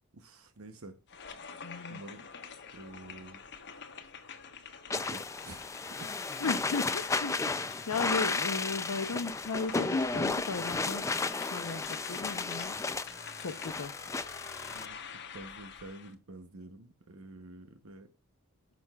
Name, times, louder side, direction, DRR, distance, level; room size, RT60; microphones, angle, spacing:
voice 1, 0.1-1.0 1.9-2.3 2.7-3.4 4.9-5.7 6.0-6.1 14.7-18.1, right 2 dB, 70° right, 0.9 m, -49 dB
sound 1, 1.1-16.1, left 6 dB, 55° left, 1.2 m, -48 dB
voice 2, 1.6-2.0 6.4-11.1 11.3-12.8 13.4-14.0, left 4 dB, 85° left, 0.7 m, -36 dB
sound 2, 2.3-8.5, equal, 10° right, 3.8 m, -68 dB
sound 3, 4.9-14.9, left 3 dB, 15° left, 0.4 m, -33 dB
13.5 x 6.2 x 2.3 m
head